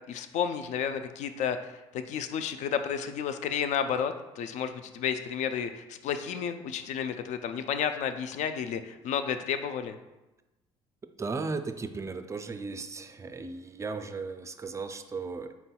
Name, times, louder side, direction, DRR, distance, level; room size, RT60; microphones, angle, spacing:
voice 1, 0.1-9.9, left 8 dB, 60° left, 9 dB, 0.4 m, -32 dB
voice 2, 11.2-15.5, right 4 dB, 20° right, 8 dB, 0.4 m, -36 dB
4.2 x 4.0 x 2.3 m, 1.0 s
supercardioid pair, 70°, 14 cm